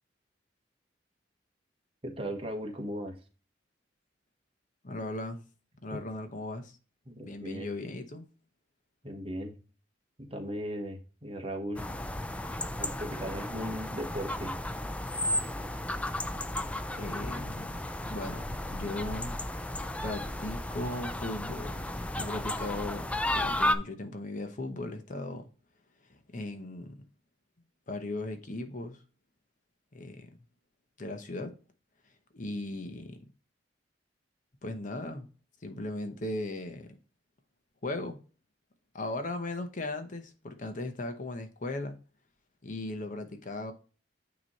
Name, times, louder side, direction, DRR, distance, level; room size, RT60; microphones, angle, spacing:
voice 1, 2.0-3.2 5.9-6.0 7.0-7.7 9.0-9.6 10.2-11.9 12.8-14.6, equal, 30° right, 1.2 m, -37 dB
voice 2, 4.8-5.4 5.8-6.7 7.2-8.2 16.9-17.8 18.1-19.4 20.0-21.8 22.2-25.5 26.1-27.0 27.9-29.0 29.9-30.3 31.0-31.6 32.3-33.2 34.6-35.3 35.6-37.0 37.8-38.2 38.9-42.0 42.6-43.7, left 2 dB, 45° left, 0.9 m, -37 dB
sound 1, 11.8-23.8, left 1 dB, 5° left, 0.4 m, -34 dB
9.1 x 3.1 x 4.1 m
head